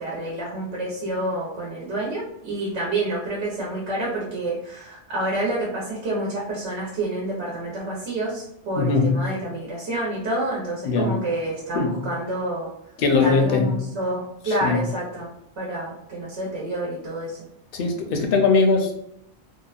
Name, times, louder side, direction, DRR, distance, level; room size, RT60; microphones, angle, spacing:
voice 1, 0.0-12.7 13.2-15.3 15.6-17.4, right 1 dB, 85° right, -4 dB, 1.0 m, -28 dB
voice 2, 8.8-9.1 10.8-11.2 11.7-11.9 13.0-13.7 14.5-14.8 17.7-18.9, left 4 dB, 65° left, 3 dB, 0.7 m, -20 dB
2.8 x 2.1 x 2.3 m, 0.75 s
omnidirectional pair, 1.1 m